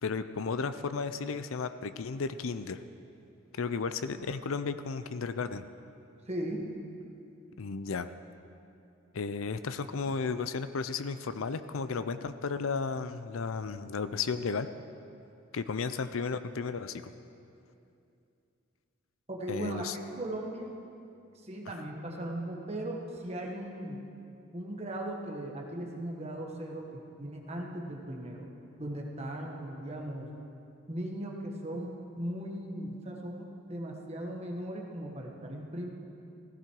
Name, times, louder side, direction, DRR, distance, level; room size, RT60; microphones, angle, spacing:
voice 1, 0.0-2.8 3.5-5.7 7.6-8.1 9.1-14.7 15.5-17.1 19.5-19.9, left 5 dB, 85° left, 12 dB, 0.5 m, -34 dB
voice 2, 6.3-6.7 19.3-20.7 21.3-24.0 24.5-28.5 28.8-30.3 30.9-35.9, right 1 dB, 30° right, 0 dB, 1.4 m, -38 dB
15.5 x 15.0 x 4.6 m, 2.6 s
head